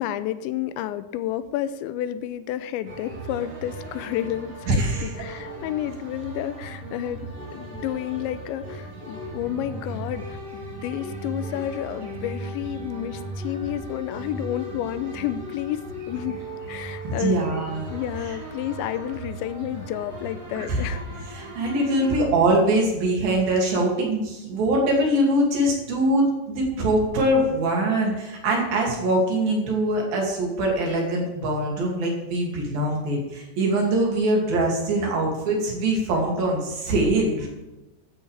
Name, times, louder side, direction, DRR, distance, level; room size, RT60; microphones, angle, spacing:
voice 1, 0.0-16.4 16.7-17.5 17.9-21.0, left 11 dB, 90° left, 13 dB, 2.9 m, -30 dB
sound 1, 2.8-22.2, right 1 dB, 35° right, 4.4 m, -37 dB
voice 2, 4.7-5.4 17.0-17.9 18.3-18.4 20.5-20.8 21.3-37.5, right 1 dB, 55° right, -1 dB, 4.0 m, -23 dB
14.5 x 11.5 x 3.4 m, 1.0 s
omnidirectional pair, 5.1 m